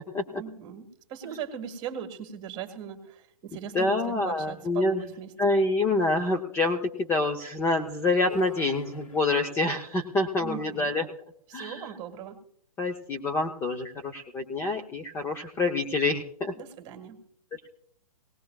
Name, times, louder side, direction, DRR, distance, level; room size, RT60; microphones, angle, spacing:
voice 1, 0.3-5.3 10.4-10.9 11.5-12.4 16.6-17.2, right 8 dB, 25° right, 5 dB, 1.9 m, -39 dB
voice 2, 3.7-5.0 5.4-11.1 11.5-11.8 12.8-16.5, left 2 dB, 10° left, 4 dB, 0.7 m, -27 dB
sound 1, 8.3-9.8, left 6 dB, 65° left, 6.0 m, -45 dB
19.0 x 17.0 x 2.4 m, 0.63 s
hypercardioid pair, 150°, 19 cm